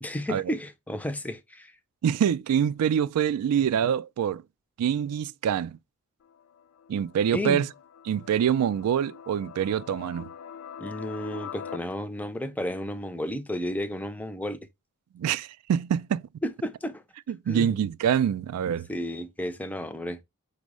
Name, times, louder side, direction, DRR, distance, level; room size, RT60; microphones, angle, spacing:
voice 1, 0.0-1.7 7.3-7.7 10.8-14.6 16.4-17.0 17.5-17.8 18.9-20.2, left 1 dB, 5° left, 0.4 m, -32 dB
voice 2, 2.0-4.4 4.8-5.8 6.9-7.7 8.0-10.3 15.1-16.3 17.3-18.9, right 8 dB, 85° right, 0.3 m, -25 dB
sound 1, 6.2-11.8, left 8 dB, 70° left, 0.4 m, -44 dB
5.2 x 2.1 x 4.8 m
head